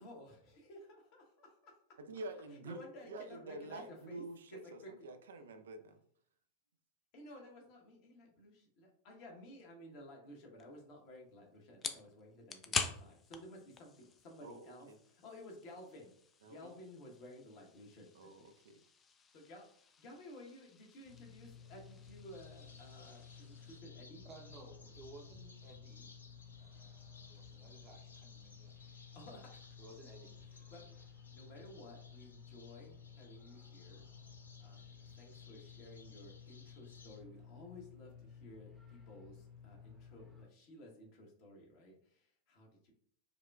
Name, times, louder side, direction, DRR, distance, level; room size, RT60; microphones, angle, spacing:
voice 1, 0.0-1.7 2.5-4.2 4.5-5.1 7.1-16.1 16.4-18.6 19.3-24.2 29.1-29.7 30.5-31.0 31.3-34.1 34.6-42.9, left 1 dB, 45° left, 0 dB, 1.0 m, -55 dB
voice 2, 2.1-2.8 3.1-6.0 14.4-15.0 16.4-16.8 18.2-18.8, right 2 dB, 65° right, 7 dB, 0.3 m, -48 dB
sound 1, 10.6-23.8, left 5 dB, 20° left, 0.4 m, -47 dB
sound 2, 21.0-40.4, left 7 dB, 5° left, 0.8 m, -55 dB
sound 3, 22.3-37.2, left 3 dB, 75° left, 0.5 m, -61 dB
voice 3, 24.2-26.1 26.6-28.8 29.8-30.4, right 2 dB, 30° right, 2 dB, 0.7 m, -57 dB
4.9 x 2.2 x 2.2 m, 0.63 s
figure-of-eight pair, 90°, 0 cm